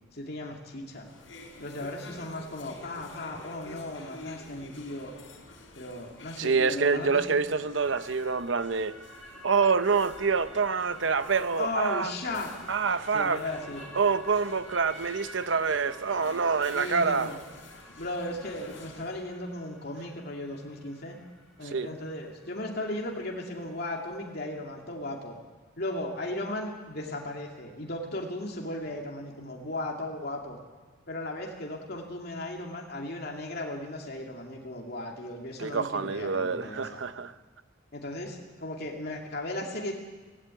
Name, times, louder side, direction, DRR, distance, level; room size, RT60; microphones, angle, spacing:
voice 1, 0.1-1.1 1.6-5.1 5.8-7.2 11.6-12.5 13.1-13.8 16.7-17.4 18.0-21.2 21.6-25.4 25.8-30.6 31.1-37.0 37.9-39.9, left 1 dB, 55° left, 0 dB, 2.5 m, -36 dB
sound 1, 0.9-19.3, left 2 dB, 90° left, 3.8 m, -49 dB
voice 2, 6.4-9.0 9.4-12.1 12.7-13.4 13.9-17.4 21.6-21.9 35.6-37.3, right 5 dB, 75° right, 12 dB, 0.9 m, -26 dB
sound 2, 7.8-24.2, equal, ahead, 3.1 m, -50 dB
17.5 x 16.5 x 9.0 m, 1.3 s
head